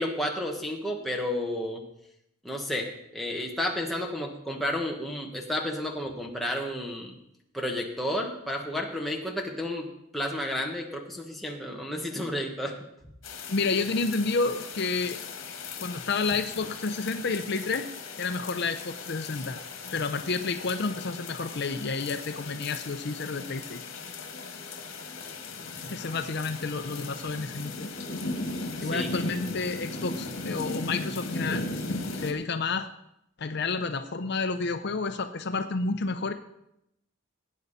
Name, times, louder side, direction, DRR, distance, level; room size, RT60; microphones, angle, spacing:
voice 1, 0.0-1.8 2.4-7.1 7.5-12.8 28.9-29.1, left 1 dB, ahead, 0 dB, 1.5 m, -31 dB
sound 1, 13.2-32.3, left 3 dB, 70° left, 1.9 m, -37 dB
voice 2, 13.5-15.2 15.8-17.9 18.1-19.6 19.9-23.8 25.9-27.9 28.8-31.7 32.1-32.9 33.4-36.3, left 4 dB, 55° left, 8 dB, 0.7 m, -30 dB
17.0 x 9.4 x 4.2 m, 0.80 s
head